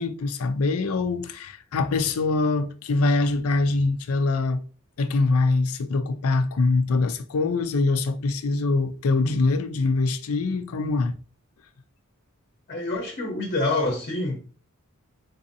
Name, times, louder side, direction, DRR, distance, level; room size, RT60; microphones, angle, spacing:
voice 1, 0.0-4.6 5.0-11.1, left 3 dB, 75° left, 0.4 m, -23 dB
voice 2, 12.7-14.4, left 2 dB, 45° left, 0.8 m, -27 dB
3.9 x 2.6 x 2.7 m
head